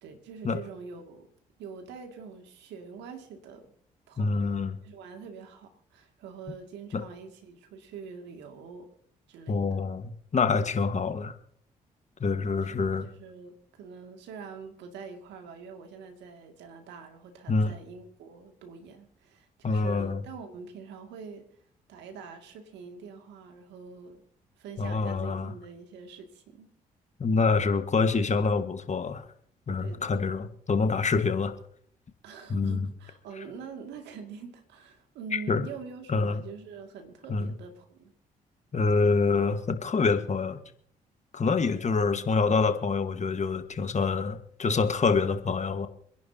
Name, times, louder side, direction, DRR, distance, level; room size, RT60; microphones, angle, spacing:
voice 1, 0.0-1.3 1.6-3.7 4.1-4.5 4.8-8.9 9.3-9.9 12.7-21.4 21.9-24.2 24.6-26.7 29.8-30.3 32.2-38.1, right 5 dB, 75° right, 4 dB, 2.3 m, -45 dB
voice 2, 4.2-4.8 6.9-7.0 9.5-11.4 12.2-13.1 17.5-17.8 19.6-20.2 24.8-25.5 27.2-29.3 29.7-31.5 32.5-32.9 35.3-35.7 36.1-36.4 37.3-37.5 38.7-40.6 41.3-45.9, left 4 dB, 40° left, 9 dB, 1.6 m, -26 dB
26.5 x 11.0 x 2.8 m, 0.62 s
hypercardioid pair, 45°, 18 cm